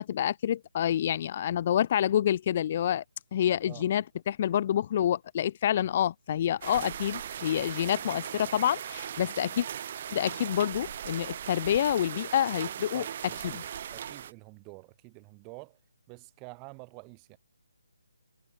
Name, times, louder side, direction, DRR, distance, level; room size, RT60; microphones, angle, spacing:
voice 1, 0.0-3.0 3.3-9.7 10.1-13.0 13.5-13.6, left 10 dB, 35° left, 0.4 m, -28 dB
sound 1, 6.6-14.3, right 9 dB, 40° right, 1.5 m, -38 dB
voice 2, 12.9-13.7 13.9-15.8 16.1-17.4, right 37 dB, 20° right, 4.5 m, -48 dB
figure-of-eight pair, 150°, 0 cm